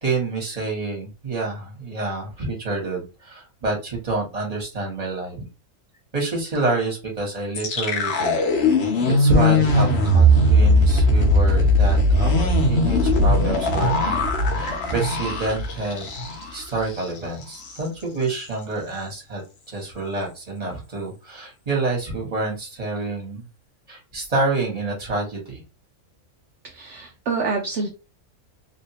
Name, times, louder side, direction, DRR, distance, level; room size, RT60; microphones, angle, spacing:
voice 1, 0.0-5.4 6.1-8.4 8.8-14.3 14.5-16.1 16.5-19.4 19.7-23.4 23.9-25.6, right 2 dB, 25° right, -1 dB, 1.4 m, -27 dB
sound 1, 7.5-16.6 16.9-17.0 17.4-17.8, left 1 dB, 55° left, 0.9 m, -19 dB
voice 2, 26.6-27.9, right 4 dB, 60° right, 3 dB, 0.8 m, -27 dB
3.1 x 2.7 x 2.8 m, 0.29 s
omnidirectional pair, 1.6 m